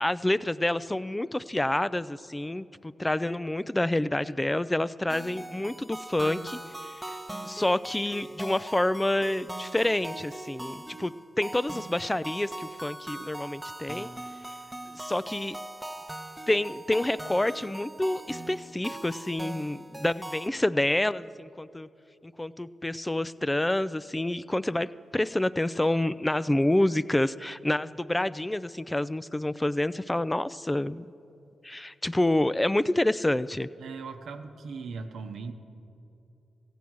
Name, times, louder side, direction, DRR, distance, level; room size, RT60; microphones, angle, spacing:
voice 1, 0.0-7.2 7.4-11.1 11.4-14.1 14.9-15.6 16.5-21.9 22.2-24.9 25.1-31.1 31.6-33.7, left 1 dB, 15° left, 16 dB, 0.3 m, -28 dB
sound 1, 5.1-20.5, right 1 dB, 10° right, 0.8 m, -41 dB
voice 2, 33.8-35.5, right 4 dB, 80° right, 6 dB, 0.8 m, -38 dB
15.5 x 8.4 x 6.2 m, 2.8 s
supercardioid pair, 50°, 0 cm